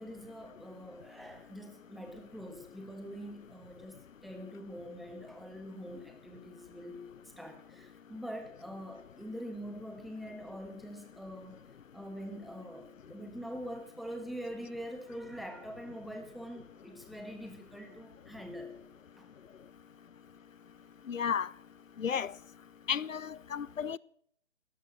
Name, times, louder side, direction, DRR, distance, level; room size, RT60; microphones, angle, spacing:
voice 1, 0.0-7.1 7.4-11.6 11.9-18.7 19.2-19.3, equal, ahead, 1.6 m, -44 dB
voice 2, 21.1-21.5 22.0-22.3 22.9-24.0, left 7 dB, 85° left, 0.7 m, -33 dB
17.5 x 13.0 x 6.5 m
figure-of-eight pair, 140°, 38 cm